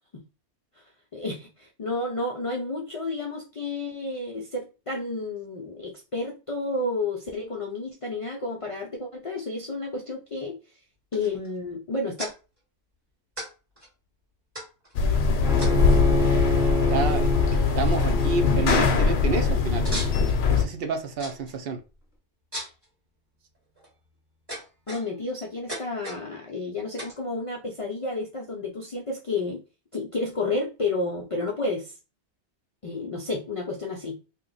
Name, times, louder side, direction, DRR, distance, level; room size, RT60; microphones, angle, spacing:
voice 1, 1.1-10.6 11.1-12.3 24.9-29.6 29.9-32.0 32.8-34.2, left 2 dB, 50° left, -1 dB, 0.4 m, -31 dB
sound 1, 11.1-11.5 12.2-12.3 13.4-13.5 13.8-13.9 14.5-14.9 15.6-16.0 17.0-17.1 17.3-17.7 18.1-18.2 18.7-18.8 19.8-20.4 21.2-21.5 22.5-22.8 23.5-23.9 24.5-25.3 25.7-26.2 27.0-27.2, right 1 dB, 20° right, 1.7 m, -37 dB
sound 2, 14.9-20.6, left 5 dB, 70° left, 0.8 m, -22 dB
Bowed string instrument, 15.4-20.5, left 2 dB, 5° right, 0.5 m, -28 dB
voice 2, 16.9-17.3 17.8-19.9 20.5-21.8, right 4 dB, 65° right, 6 dB, 0.7 m, -29 dB
2.9 x 2.1 x 3.8 m, 0.31 s
omnidirectional pair, 1.1 m